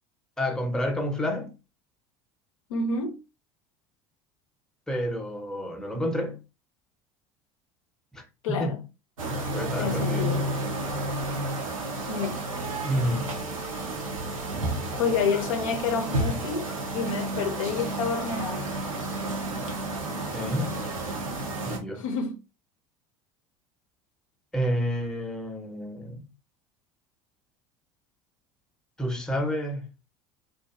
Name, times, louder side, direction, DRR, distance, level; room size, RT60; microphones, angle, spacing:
voice 1, 0.4-1.5 4.9-6.4 8.1-8.8 9.3-10.3 12.8-13.3 20.3-21.0 21.6-22.1 24.5-26.2 29.0-29.9, equal, 5° left, 0.6 m, -29 dB
voice 2, 2.7-3.2 8.4-8.8 9.8-10.5 12.1-12.4 15.0-18.8 22.0-22.3, left 5 dB, 75° left, 0.5 m, -29 dB
sound 1, 9.2-21.8, right 2 dB, 90° right, 0.6 m, -31 dB
sound 2, 12.7-17.7, right 4 dB, 40° right, 0.5 m, -46 dB
2.5 x 2.4 x 2.3 m
hypercardioid pair, 75°, 17 cm